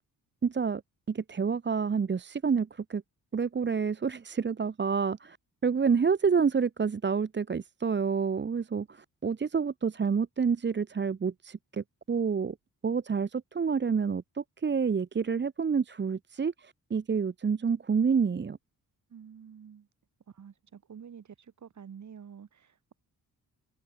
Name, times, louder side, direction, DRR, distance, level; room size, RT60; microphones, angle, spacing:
voice 1, 0.4-0.8 1.1-3.0 3.3-5.4 5.6-12.5 12.8-18.6, right 6 dB, 30° right, 1.1 m, -28 dB
voice 2, 19.1-19.9 20.3-22.9, right 7 dB, 50° right, 5.5 m, -49 dB
wide cardioid pair, 135°, 36 cm